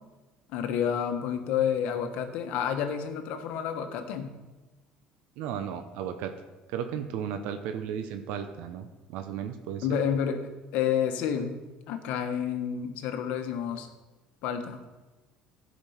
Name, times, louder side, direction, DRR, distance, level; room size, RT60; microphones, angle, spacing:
voice 1, 0.5-4.3 9.8-11.6 11.9-13.9 14.4-14.8, left 8 dB, 70° left, 7 dB, 1.1 m, -29 dB
voice 2, 5.4-6.3 6.7-10.0, right 8 dB, 75° right, 8 dB, 0.7 m, -35 dB
12.5 x 5.2 x 5.8 m, 1.2 s
cardioid pair, 135°, 3 cm